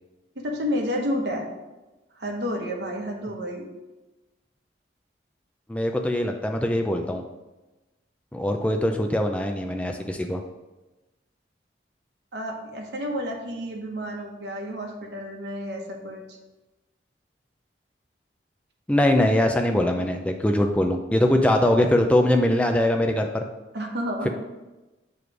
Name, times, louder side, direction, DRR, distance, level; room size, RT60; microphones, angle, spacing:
voice 1, 0.4-1.5 2.1-3.7 12.3-16.2 23.7-24.3, equal, 65° right, 1 dB, 1.0 m, -30 dB
voice 2, 5.7-7.2 8.3-10.4 18.9-23.5, left 1 dB, 5° left, 4 dB, 0.4 m, -22 dB
7.1 x 3.2 x 4.8 m, 1.1 s
head